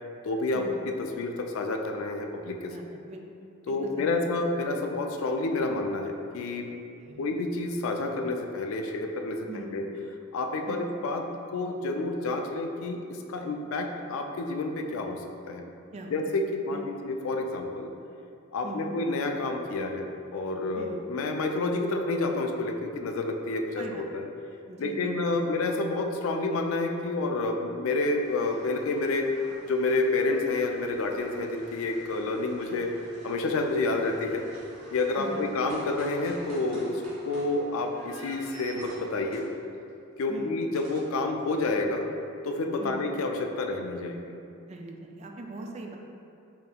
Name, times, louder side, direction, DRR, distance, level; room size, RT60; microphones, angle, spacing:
voice 1, 0.2-2.8 3.7-6.7 7.2-9.4 9.7-9.9 10.3-11.2 11.5-15.7 16.1-17.9 18.5-20.0 20.3-24.2 24.8-29.3 29.7-32.9 33.2-34.4 34.9-39.5 40.2-42.1 42.4-44.3, left 2 dB, 70° left, 3 dB, 0.4 m, -29 dB
voice 2, 2.7-3.2 3.7-4.2 7.0-7.2 9.5-9.7 10.7-10.9 15.9-16.2 16.7-16.8 18.6-18.9 20.8-21.0 23.8-24.0 24.7-25.4 35.2-35.5 40.3-40.5 42.8-43.0 44.7-46.0, right 2 dB, 30° right, 2 dB, 0.3 m, -40 dB
sound 1, 28.2-39.9 40.7-41.0, right 1 dB, 80° right, 1.3 m, -49 dB
5.0 x 2.8 x 2.3 m, 2.5 s
head